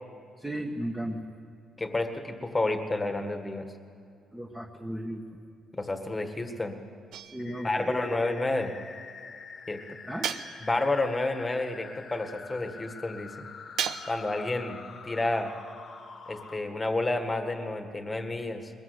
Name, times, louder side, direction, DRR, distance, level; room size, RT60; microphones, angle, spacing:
voice 1, 0.4-1.2 4.3-5.4 7.3-8.2 10.0-10.3, right 1 dB, 5° right, 0 dB, 1.4 m, -35 dB
voice 2, 1.8-3.7 5.7-6.8 7.6-8.7 9.7-10.0 10.6-13.5 14.0-15.5 16.3-18.7, left 2 dB, 15° left, 6 dB, 1.7 m, -30 dB
sound 1, 7.1-7.8 10.2-11.0 13.8-14.4, right 8 dB, 70° right, 0.9 m, -35 dB
sound 2, 7.4-16.6, left 5 dB, 35° left, 1.5 m, -46 dB
22.5 x 21.0 x 8.1 m, 2.5 s
cardioid pair, 155°, 0 cm